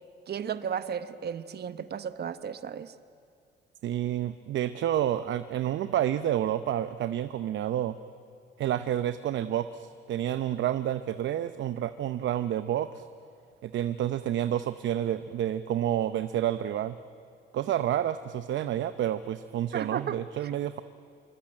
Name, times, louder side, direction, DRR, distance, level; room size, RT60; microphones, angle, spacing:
voice 1, 0.3-2.9 19.7-20.5, right 8 dB, 55° right, 11 dB, 1.2 m, -34 dB
voice 2, 3.8-8.0 8.6-13.0 13.6-17.0 17.5-20.8, right 11 dB, 70° right, 11 dB, 0.8 m, -29 dB
26.5 x 23.5 x 8.8 m, 2.3 s
cardioid pair, 90°, 20 cm